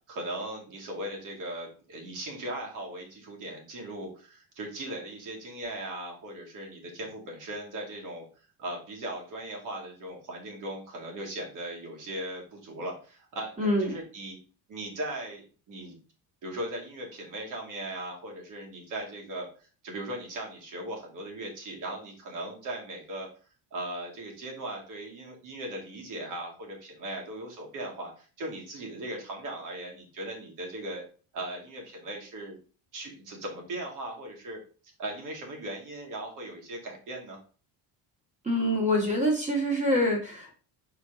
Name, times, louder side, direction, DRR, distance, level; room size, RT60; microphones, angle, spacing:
voice 1, 0.1-8.3 8.6-14.4 14.7-16.0 16.4-19.5 19.8-23.3 23.7-31.0 31.3-32.6 32.9-34.6 35.0-37.4, right 1 dB, 50° right, 0 dB, 2.5 m, -38 dB
voice 2, 13.6-13.9 38.4-40.5, equal, 15° right, 0 dB, 1.8 m, -25 dB
6.6 x 4.8 x 3.8 m, 0.39 s
cardioid pair, 150°, 40 cm